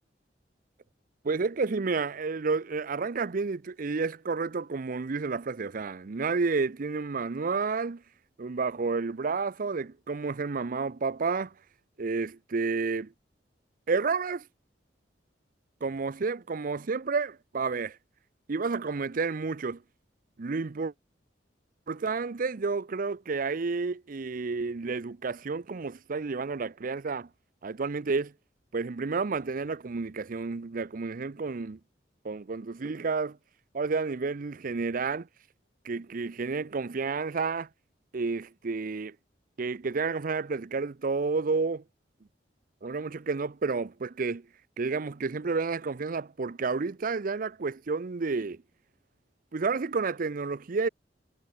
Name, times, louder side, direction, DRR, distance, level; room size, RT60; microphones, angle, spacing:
voice 1, 1.2-8.0 8.4-11.5 12.0-13.1 13.9-14.4 15.8-18.0 18.5-19.8 20.4-20.9 21.9-27.3 27.6-28.3 28.7-31.8 32.2-33.4 33.7-35.3 35.8-37.7 38.1-39.2 39.6-41.8 42.8-44.5 44.8-48.6 49.5-50.9, right 4 dB, 50° right, 0.6 m, -30 dB
head